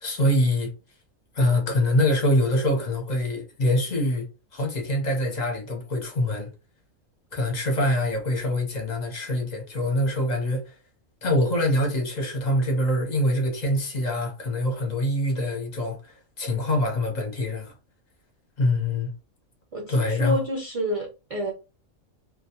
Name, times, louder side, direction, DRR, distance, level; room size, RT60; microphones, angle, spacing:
voice 1, 0.0-0.7 1.3-6.5 7.3-10.7 11.2-17.7 18.6-19.1 19.9-20.4, left 1 dB, 40° left, 0.7 m, -24 dB
voice 2, 19.7-21.5, equal, 50° right, 0.4 m, -29 dB
2.2 x 2.2 x 2.8 m
omnidirectional pair, 1.4 m